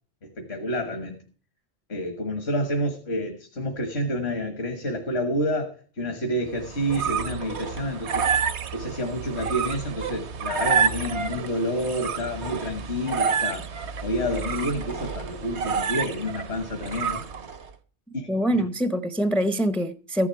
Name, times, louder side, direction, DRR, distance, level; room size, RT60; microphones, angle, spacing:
voice 1, 0.2-1.2 1.9-8.3 8.7-13.7 14.0-17.2 18.1-18.3 18.6-18.7, equal, 70° left, 1.7 m, -29 dB
sound 1, 6.5-17.7, right 6 dB, 80° right, 1.2 m, -29 dB
voice 2, 18.3-20.3, equal, ahead, 0.4 m, -24 dB
14.5 x 10.5 x 4.5 m
omnidirectional pair, 1.1 m